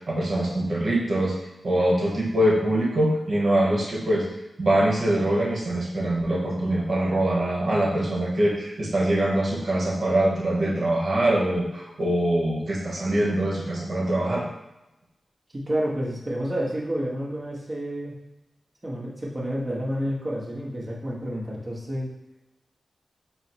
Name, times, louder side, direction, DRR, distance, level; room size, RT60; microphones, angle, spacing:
voice 1, 0.1-1.3 1.6-4.2 4.6-14.4, right 1 dB, 60° right, -3 dB, 1.2 m, -23 dB
voice 2, 15.5-18.2 18.8-22.1, equal, 40° right, -4 dB, 1.3 m, -29 dB
4.5 x 2.1 x 4.5 m, 0.96 s
cardioid pair, 50°, 0 cm